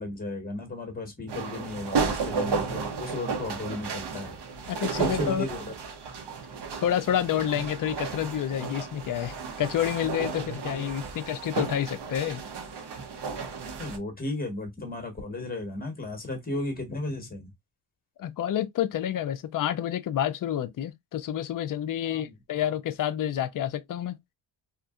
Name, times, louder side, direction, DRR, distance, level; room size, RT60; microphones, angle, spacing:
voice 1, 0.0-4.3 5.0-5.7 13.8-17.5 22.0-22.6, left 2 dB, 20° left, 1.3 m, -35 dB
sound 1, 1.3-14.0, right 5 dB, 55° right, 0.8 m, -33 dB
voice 2, 4.7-5.5 6.8-12.4 18.2-24.2, left 10 dB, 45° left, 0.5 m, -29 dB
2.8 x 2.5 x 2.4 m
cardioid pair, 105°, 48 cm